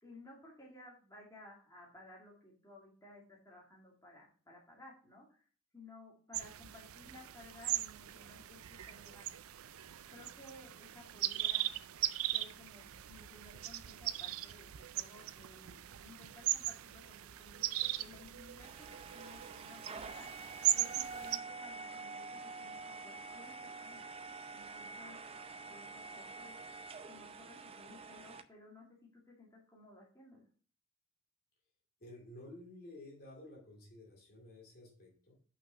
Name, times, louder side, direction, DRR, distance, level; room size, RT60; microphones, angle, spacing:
voice 1, 0.0-5.4 5.7-8.6 8.9-9.3 10.1-11.7 12.3-20.3 20.7-24.3 24.5-25.2 25.7-26.6 27.1-30.4, left 2 dB, 15° left, -4 dB, 2.3 m, -57 dB
sound 1, 6.3-21.4, right 14 dB, 80° right, 0.5 m, -39 dB
sound 2, 18.6-28.4, right 4 dB, 30° right, 0.6 m, -47 dB
voice 2, 32.0-35.4, left 1 dB, 45° left, -1 dB, 2.5 m, -53 dB
5.8 x 5.8 x 5.7 m, 0.43 s
head